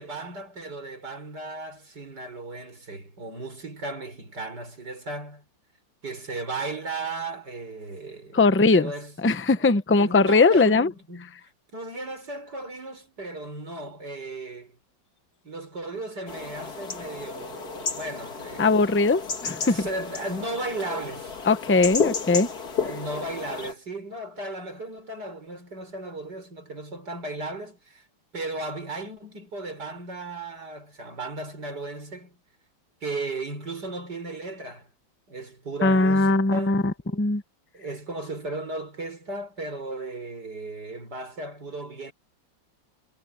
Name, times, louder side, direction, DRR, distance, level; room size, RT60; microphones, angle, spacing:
voice 1, 0.0-5.4 6.0-9.1 10.0-11.4 11.7-14.7 15.4-18.8 19.6-21.4 22.8-28.0 28.3-32.4 33.0-34.9 35.3-36.8 37.7-42.1, right 2 dB, 60° right, 6.5 m, -35 dB
voice 2, 8.3-8.9 9.2-10.9 18.6-19.9 21.5-22.5 35.8-37.4, left 3 dB, 20° left, 0.3 m, -20 dB
sound 1, 16.3-23.7, left 5 dB, 55° left, 2.7 m, -32 dB
omnidirectional pair, 2.0 m